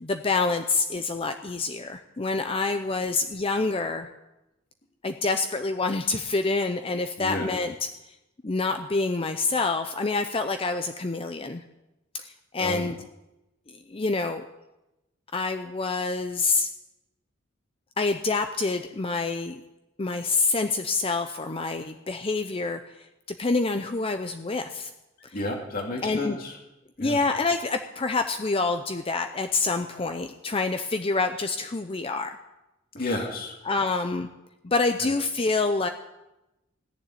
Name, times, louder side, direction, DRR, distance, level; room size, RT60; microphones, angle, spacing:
voice 1, 0.0-4.1 5.0-7.7 8.4-11.6 12.1-12.9 13.7-14.5 15.3-16.7 18.0-19.6 20.0-22.8 23.4-24.9 26.0-26.4 27.0-32.4 33.7-34.3 34.6-35.9, left 3 dB, 30° left, 7 dB, 0.6 m, -27 dB
voice 2, 7.2-7.5 12.6-12.9 25.3-26.6 27.0-27.2 32.9-33.6 35.0-35.1, left 1 dB, 45° left, 1 dB, 2.6 m, -31 dB
17.0 x 7.2 x 9.9 m, 0.97 s
head